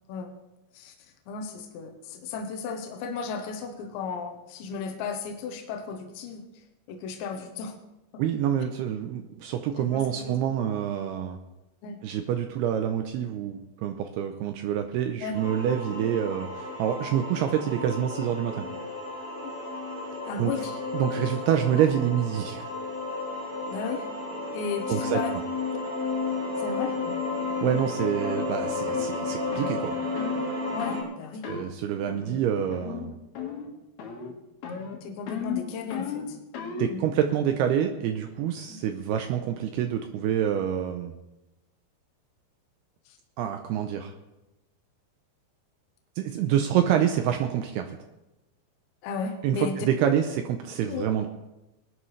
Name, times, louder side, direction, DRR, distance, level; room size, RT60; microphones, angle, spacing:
voice 1, 1.3-6.4 6.9-7.8 9.8-10.3 11.8-12.0 15.2-15.4 20.3-20.8 23.7-24.1 24.5-25.3 26.6-27.0 30.7-31.5 35.0-36.4 36.9-37.1 38.7-38.8 43.1-43.2 46.4-46.5 49.0-49.9 50.9-51.1, left 5 dB, 85° left, 4 dB, 3.3 m, -34 dB
voice 2, 8.2-11.4 12.0-18.7 20.4-20.5 20.9-22.7 24.9-25.2 27.6-30.0 31.5-33.1 36.8-41.1 43.4-44.1 46.2-48.0 49.4-51.3, right 9 dB, 80° right, 6 dB, 2.5 m, -27 dB
sound 1, 15.3-31.0, left 3 dB, 15° right, 4.1 m, -32 dB
sound 2, 27.0-27.2 27.6-27.8 28.2-28.5 28.9-29.1 29.5-29.8 30.2-30.4 30.8-31.1 31.4-31.7 32.1-32.4 32.7-33.1 33.4-33.7 34.0-34.3 34.6-37.0, left 7 dB, 65° left, 3.5 m, -35 dB
20.5 x 11.0 x 3.2 m, 0.98 s
omnidirectional pair, 5.1 m